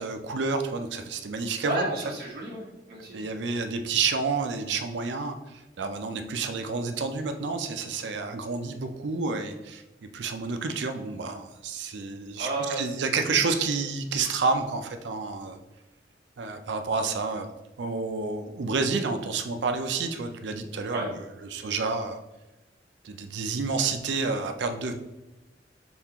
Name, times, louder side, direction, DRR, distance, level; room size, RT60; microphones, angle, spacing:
voice 1, 0.0-2.0 3.1-15.6 16.4-17.5 17.8-21.2 21.4-22.2 23.0-24.9, right 4 dB, 75° right, 7 dB, 0.5 m, -29 dB
voice 2, 1.6-3.2 12.4-12.9 20.9-21.1, right 2 dB, 55° right, -4 dB, 1.4 m, -32 dB
6.9 x 2.4 x 2.9 m, 1.0 s
head